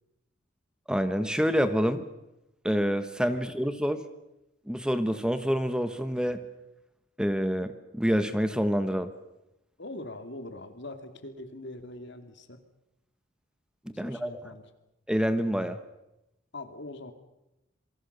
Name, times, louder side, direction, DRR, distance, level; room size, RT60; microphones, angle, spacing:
voice 1, 0.9-2.0 2.6-4.0 4.7-6.4 7.2-9.1 13.9-14.3 15.1-15.8, equal, 5° right, 10 dB, 1.2 m, -27 dB
voice 2, 9.8-12.6 13.9-14.7 16.5-17.1, left 2 dB, 60° left, 8 dB, 2.6 m, -42 dB
27.0 x 23.5 x 6.8 m, 0.91 s
head